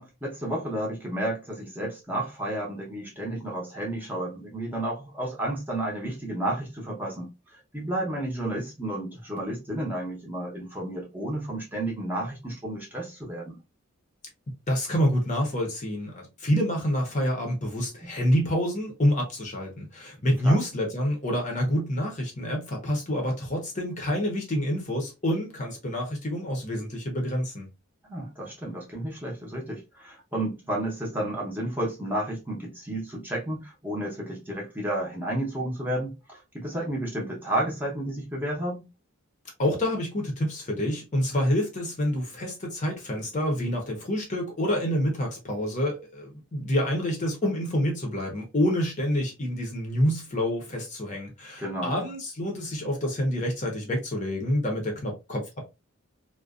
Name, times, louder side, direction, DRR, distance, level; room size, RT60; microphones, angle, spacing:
voice 1, 0.0-7.3 7.7-13.6 18.0-18.1 20.4-20.6 28.0-38.9 51.6-52.1, right 1 dB, 10° right, 0.7 m, -32 dB
voice 2, 14.7-27.7 39.6-55.7, equal, 35° left, 0.7 m, -27 dB
2.4 x 2.2 x 2.3 m
head